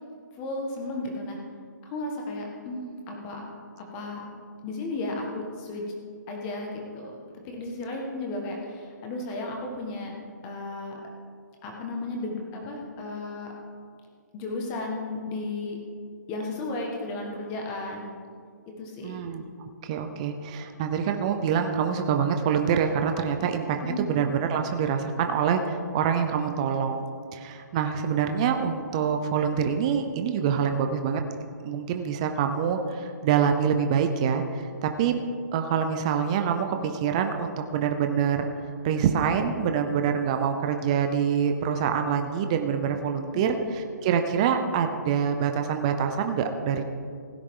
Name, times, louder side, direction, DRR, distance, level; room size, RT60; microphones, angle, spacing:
voice 1, 0.4-1.4 1.8-3.4 3.9-4.3 4.6-5.8 6.3-10.1 10.4-11.0 11.6-13.5 14.3-15.8 16.3-18.1 18.8-19.2 23.8-24.1 43.3-43.6, left 2 dB, 20° left, 1 dB, 1.5 m, -34 dB
voice 2, 19.0-19.5 19.8-27.1 27.3-31.2 31.6-35.2 35.5-38.5 38.8-46.8, right 7 dB, 20° right, 6 dB, 0.5 m, -26 dB
16.0 x 9.9 x 3.8 m, 2.2 s
hypercardioid pair, 170°, 10 cm